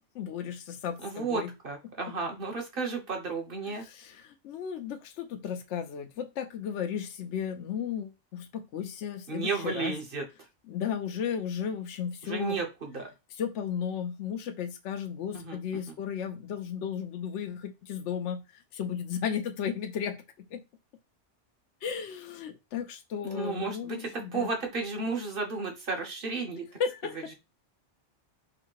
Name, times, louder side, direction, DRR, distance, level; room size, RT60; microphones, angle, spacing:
voice 1, 0.1-1.5 3.7-10.0 10.7-12.6 13.3-20.2 20.5-20.6 21.8-24.5 26.8-27.3, left 8 dB, 70° left, 0.9 m, -34 dB
voice 2, 1.0-3.8 9.3-10.2 12.2-13.1 15.3-15.9 23.2-26.7, right 4 dB, 50° right, 1.2 m, -33 dB
4.9 x 2.2 x 4.6 m
omnidirectional pair, 1.3 m